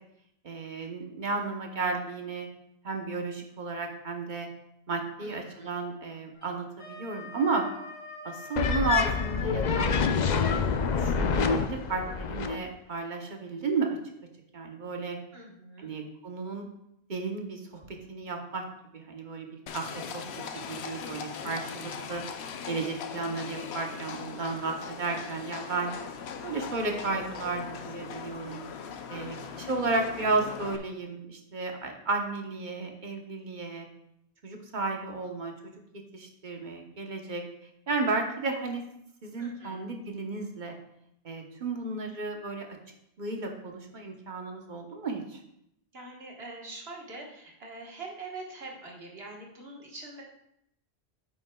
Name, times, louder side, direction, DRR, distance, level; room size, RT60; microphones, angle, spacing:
voice 1, 0.4-2.5 2.8-4.5 4.9-7.6 8.2-10.0 10.5-13.9 14.5-15.2 15.8-16.7 17.1-18.6 18.9-22.2 22.7-25.9 26.4-28.6 29.1-33.9 34.4-35.5 36.1-37.4 37.9-38.8 39.2-40.8 41.2-42.7 43.2-45.4, right 3 dB, 45° right, 3 dB, 1.1 m, -33 dB
voice 2, 5.2-5.7 15.3-15.9 29.1-29.7 39.4-39.8 45.9-50.2, right 2 dB, 65° right, -1 dB, 1.7 m, -44 dB
Wind instrument woodwind instrument, 6.3-9.4, left 4 dB, 30° left, 2.8 m, -44 dB
sound 1, 8.6-12.6, left 5 dB, 50° left, 0.6 m, -26 dB
Livestock farm animals working animals, 19.7-30.8, left 6 dB, 80° left, 0.9 m, -40 dB
9.2 x 7.9 x 2.3 m, 0.77 s
omnidirectional pair, 1.1 m